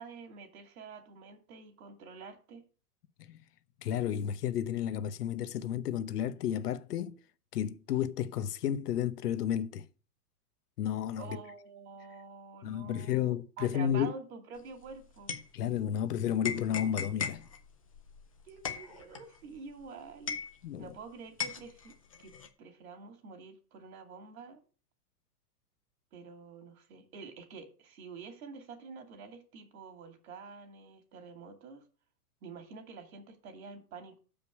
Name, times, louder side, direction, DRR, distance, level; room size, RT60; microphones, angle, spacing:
voice 1, 0.0-2.6 11.2-15.3 18.4-20.4 20.8-21.9 22.2-22.3 22.6-24.6 26.1-31.8 32.4-34.2, right 5 dB, 60° right, 2.6 m, -48 dB
voice 2, 3.8-7.1 7.5-9.8 10.8-11.4 12.6-14.1 15.5-17.5 20.6-20.9, left 10 dB, 75° left, 1.0 m, -32 dB
sound 1, 14.6-16.0 16.4-21.0 21.4-22.5, left 7 dB, 25° left, 0.4 m, -39 dB
7.1 x 5.2 x 7.1 m
supercardioid pair, 170°, 47 cm